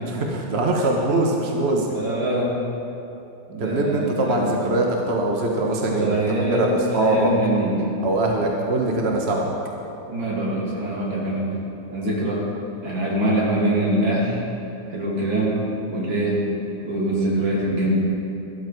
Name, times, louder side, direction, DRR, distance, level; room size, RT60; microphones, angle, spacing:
voice 1, 0.1-1.9 3.6-6.1 6.5-7.3 8.0-9.5, right 2 dB, 40° right, 0 dB, 1.2 m, -22 dB
voice 2, 1.9-2.5 3.5-4.7 5.5-7.9 10.1-11.6 11.9-12.4 12.8-14.4 14.9-15.6 15.9-16.5 16.8-17.9, right 1 dB, 75° right, -5 dB, 3.4 m, -24 dB
13.0 x 13.0 x 4.6 m, 2.9 s
omnidirectional pair, 2.1 m